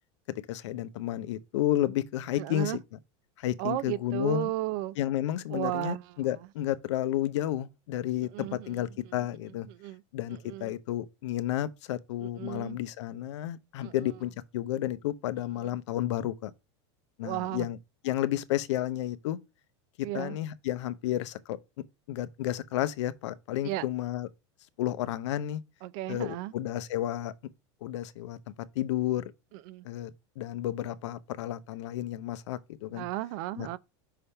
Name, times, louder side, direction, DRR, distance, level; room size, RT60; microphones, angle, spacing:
voice 1, 0.5-2.8 3.4-4.5 5.0-9.7 10.1-16.5 17.2-17.8 18.0-19.4 20.0-21.6 22.1-24.3 24.8-25.6 26.1-27.3 27.8-28.4 28.8-29.2 29.8-30.1 30.4-33.1 33.6-33.7, left 13 dB, 75° left, 0.6 m, -31 dB
voice 2, 2.4-2.8 3.6-5.0 5.5-6.1 8.2-9.3 9.7-10.0 10.3-10.7 12.2-12.8 13.8-13.9 15.6-15.7 17.2-17.7 20.0-20.4 23.6-23.8 25.8-26.5 29.5-29.9 32.9-33.8, right 16 dB, 45° right, 0.4 m, -35 dB
5.6 x 3.5 x 5.4 m
supercardioid pair, 165°, 15 cm